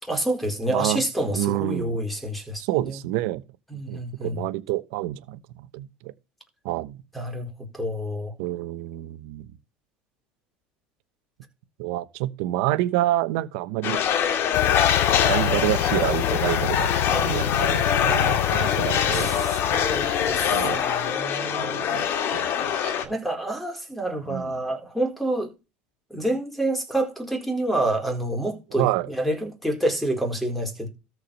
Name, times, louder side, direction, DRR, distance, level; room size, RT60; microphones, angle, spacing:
voice 1, 0.0-3.0 3.7-4.4 7.1-8.4 17.1-17.6 19.1-22.2 23.1-25.5 26.1-30.9, right 1 dB, ahead, 4.3 m, -28 dB
voice 2, 0.7-2.0 2.6-3.4 3.9-5.4 5.7-6.1 6.6-7.0 8.4-9.5 11.8-14.0 15.2-16.9 17.3-19.3 20.5-20.8 21.5-23.1 24.3-24.5 28.8-29.1, right 16 dB, 70° right, 1.0 m, -28 dB
sound 1, 13.8-23.0, left 9 dB, 50° left, 2.3 m, -24 dB
sound 2, 14.5-20.9, left 12 dB, 80° left, 0.6 m, -28 dB
13.5 x 4.8 x 5.3 m
supercardioid pair, 105°, 5 cm